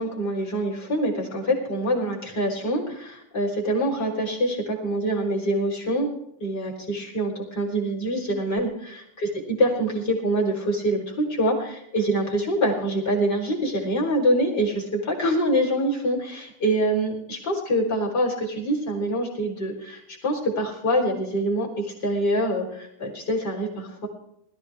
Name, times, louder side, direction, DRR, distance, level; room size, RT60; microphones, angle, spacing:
voice 1, 0.0-6.1 6.4-9.3 9.6-24.1, right 1 dB, 25° left, -2 dB, 4.0 m, -25 dB
21.0 x 14.0 x 3.5 m, 0.78 s
omnidirectional pair, 4.2 m